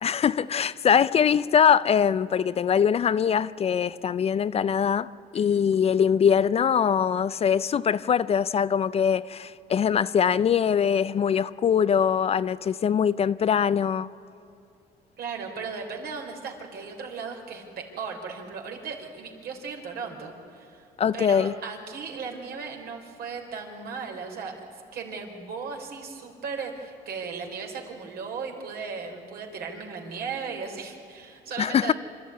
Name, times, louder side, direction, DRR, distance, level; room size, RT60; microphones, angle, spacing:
voice 1, 0.0-14.1 21.0-21.5 31.6-31.9, left 7 dB, 35° left, 0.5 m, -22 dB
voice 2, 5.3-5.7 15.2-20.9 21.1-31.9, right 5 dB, 65° right, 4.0 m, -36 dB
26.0 x 13.0 x 9.6 m
cardioid pair, 110°, 17 cm